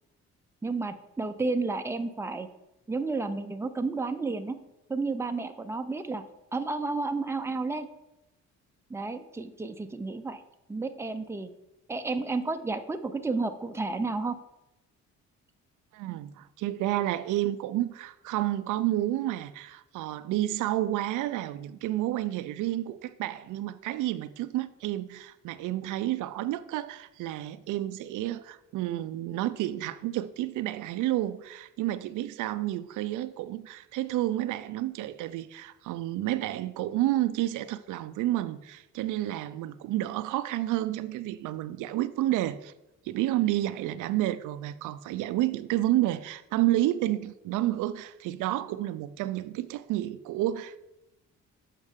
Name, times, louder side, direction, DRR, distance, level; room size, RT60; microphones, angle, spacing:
voice 1, 0.6-2.5 2.9-4.6 4.9-6.2 6.5-7.9 8.9-10.4 10.7-11.5 11.9-14.4, right 3 dB, 10° right, 0.5 m, -31 dB
voice 2, 15.9-42.7 43.0-50.8, right 14 dB, 85° right, 0.5 m, -30 dB
8.1 x 5.4 x 3.6 m
cardioid pair, 90°, 30 cm